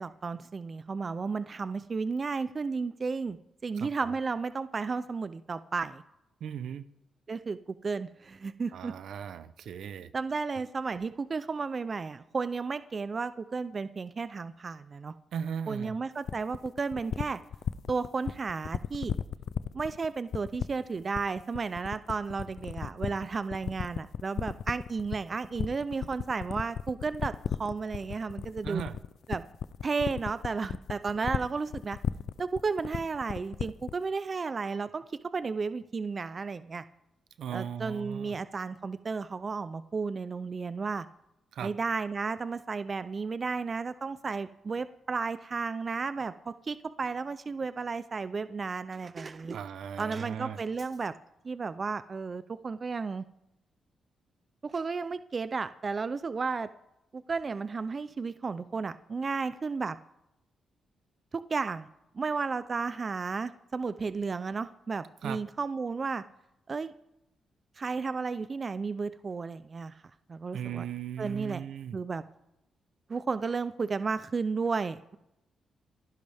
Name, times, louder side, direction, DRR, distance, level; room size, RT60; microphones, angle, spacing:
voice 1, 0.0-3.4 3.6-6.0 7.3-8.9 10.1-15.1 15.7-17.4 17.9-19.1 19.7-27.3 27.6-28.8 29.3-29.4 29.8-32.0 32.4-35.0 35.3-36.8 37.5-41.1 41.6-49.6 50.0-51.1 51.4-53.2 54.6-56.7 57.1-60.0 61.3-61.9 62.1-66.2 66.7-66.9 67.8-69.9 70.3-70.8 71.2-71.6 71.9-72.2 73.1-75.2, right 4 dB, 40° right, 13 dB, 0.5 m, -33 dB
voice 2, 6.4-6.8 8.7-10.1 15.3-16.0 28.6-29.0 37.4-38.4 41.5-41.7 49.5-50.6 65.2-65.4 70.5-72.0, right 8 dB, 75° right, 14 dB, 0.7 m, -37 dB
sound 1, 16.3-34.0, left 8 dB, 70° left, 0.5 m, -34 dB
29.0 x 10.5 x 3.5 m, 0.89 s
cardioid pair, 80°, 0 cm